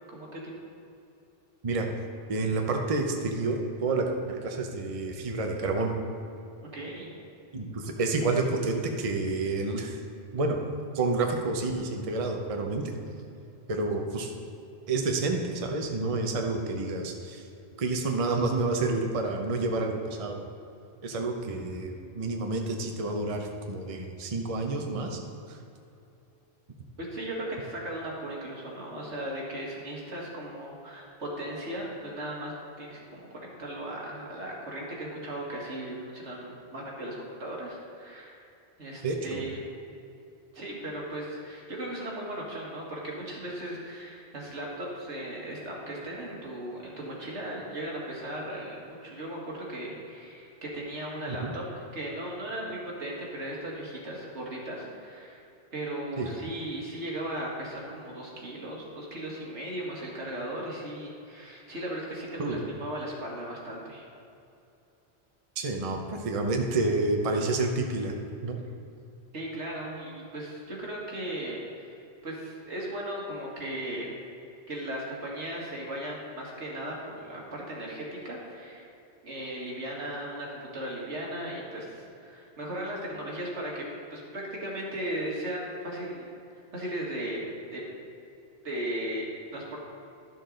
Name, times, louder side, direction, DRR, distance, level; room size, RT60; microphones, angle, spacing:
voice 1, 0.1-0.5 6.6-7.1 27.0-38.4 38.8-39.6 40.5-55.4 55.7-64.1 69.3-72.0 72.2-74.1 74.7-78.9 79.2-86.3 86.7-87.4 87.7-87.8 88.6-89.8, right 1 dB, 85° right, -3 dB, 2.0 m, -37 dB
voice 2, 2.3-6.0 7.5-10.0 10.3-10.6 10.9-13.0 13.7-14.3 14.9-17.4 17.8-20.5 21.0-25.2 25.5-25.6 39.0-39.5 51.4-51.5 56.2-56.3 62.4-62.6 65.6-68.1 68.4-68.6, right 3 dB, 35° right, 2 dB, 0.8 m, -29 dB
12.0 x 6.5 x 3.8 m, 2.6 s
omnidirectional pair, 1.1 m